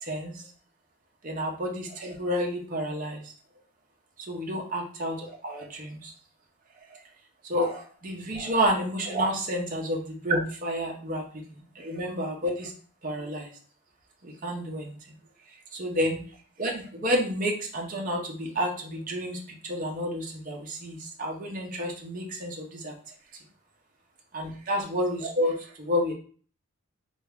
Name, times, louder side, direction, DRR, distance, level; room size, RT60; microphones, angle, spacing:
voice 1, 0.0-0.5 1.2-3.3 4.3-6.1 6.9-7.0 7.4-11.2 11.5-12.7 13.0-13.5 14.2-15.0 15.7-16.2 16.6-22.9 24.3-26.1, equal, 35° right, -1 dB, 0.6 m, -30 dB
3.3 x 2.4 x 3.4 m, 0.43 s
head